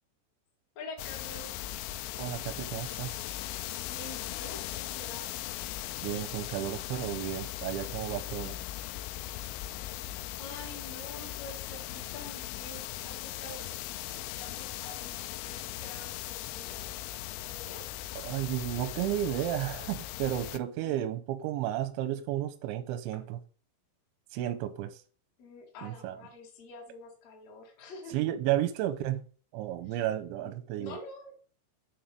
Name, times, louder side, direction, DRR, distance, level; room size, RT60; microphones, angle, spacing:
voice 1, 0.8-1.5 3.8-5.4 10.4-17.0 17.3-17.9 20.8-21.0 25.4-28.2 29.9-30.0 30.4-31.5, left 2 dB, 45° left, 2.5 m, -47 dB
sound 1, 1.0-20.6, left 15 dB, 85° left, 3.0 m, -39 dB
voice 2, 2.2-3.2 6.0-8.6 18.2-23.4 24.3-25.0 25.8-26.2 28.1-29.2 29.5-31.0, right 12 dB, 85° right, 2.8 m, -32 dB
7.4 x 3.8 x 6.6 m
omnidirectional pair, 5.6 m